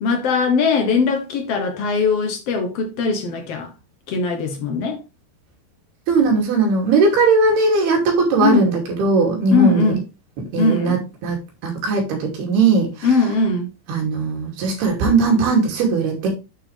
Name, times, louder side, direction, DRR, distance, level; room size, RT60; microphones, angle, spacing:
voice 1, 0.0-3.7 4.1-5.0 8.4-8.7 9.5-10.0 10.6-11.0 13.0-13.7, left 4 dB, 80° left, 1.3 m, -20 dB
voice 2, 6.1-10.0 10.5-11.0 11.2-11.4 11.6-13.1 13.9-16.3, right 4 dB, 80° right, 4.7 m, -18 dB
9.0 x 6.1 x 3.4 m
omnidirectional pair, 4.4 m